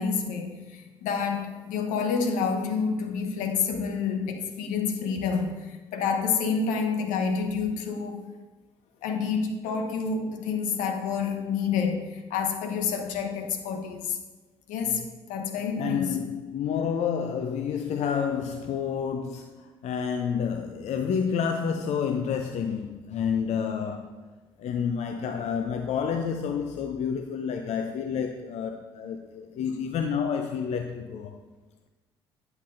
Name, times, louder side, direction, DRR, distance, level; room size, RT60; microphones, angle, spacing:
voice 1, 0.0-8.2 9.0-14.2 14.7-15.0 15.3-16.2, left 5 dB, 75° left, 0.9 m, -28 dB
voice 2, 15.8-24.1 24.6-31.4, left 7 dB, 60° left, 0.5 m, -29 dB
10.5 x 5.9 x 2.6 m
hypercardioid pair, 55°, 13 cm